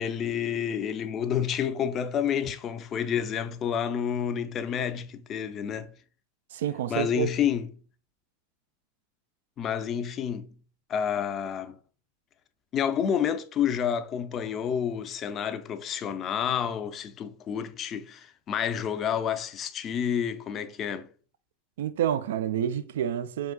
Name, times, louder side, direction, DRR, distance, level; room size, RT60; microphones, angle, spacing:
voice 1, 0.0-5.9 6.9-7.7 9.6-10.5 10.9-11.8 12.7-21.1, left 8 dB, 35° left, 0.4 m, -29 dB
voice 2, 6.5-7.3 21.8-23.5, right 10 dB, 70° right, 0.3 m, -28 dB
4.5 x 3.8 x 2.2 m
hypercardioid pair, 95°, 0 cm